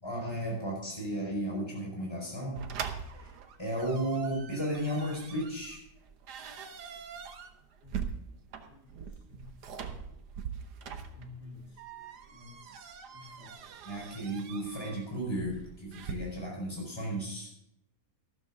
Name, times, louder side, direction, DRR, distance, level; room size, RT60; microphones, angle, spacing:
voice 1, 0.0-2.6 3.2-3.3 3.6-5.8 13.8-17.5, right 1 dB, 15° left, -2 dB, 4.9 m, -34 dB
sound 1, 2.6-16.1, right 7 dB, 90° right, 1.6 m, -43 dB
voice 2, 11.2-11.8 12.3-12.6 13.1-13.6, left 3 dB, 80° left, -3 dB, 4.1 m, -50 dB
13.0 x 12.5 x 3.7 m, 0.78 s
omnidirectional pair, 1.7 m